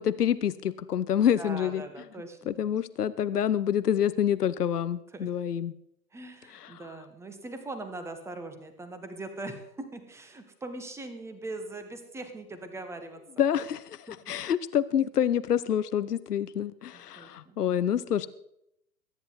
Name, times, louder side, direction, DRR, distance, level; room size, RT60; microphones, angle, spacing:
voice 1, 0.0-1.8 2.5-5.7 6.5-6.8 13.4-18.3, left 9 dB, 70° left, 16 dB, 0.9 m, -27 dB
voice 2, 1.4-2.6 5.1-5.3 6.1-13.2 14.1-14.3 16.9-17.6, right 2 dB, 5° right, 8 dB, 1.2 m, -41 dB
22.0 x 10.0 x 4.0 m, 0.76 s
figure-of-eight pair, 125°, 49 cm